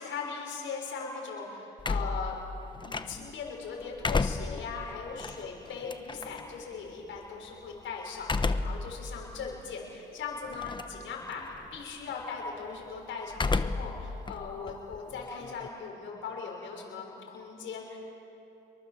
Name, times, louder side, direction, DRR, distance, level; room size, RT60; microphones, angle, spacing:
voice 1, 0.0-2.4 2.8-18.0, left 5 dB, 75° left, -1 dB, 6.0 m, -39 dB
sound 1, 1.8-3.4 3.8-6.4 8.2-8.9 9.4-9.5 10.5-11.0 11.3-11.8 13.3-14.0 14.3-15.7, left 3 dB, 25° left, 1.1 m, -31 dB
27.0 x 23.0 x 7.5 m, 3.0 s
cardioid pair, 90°, 20 cm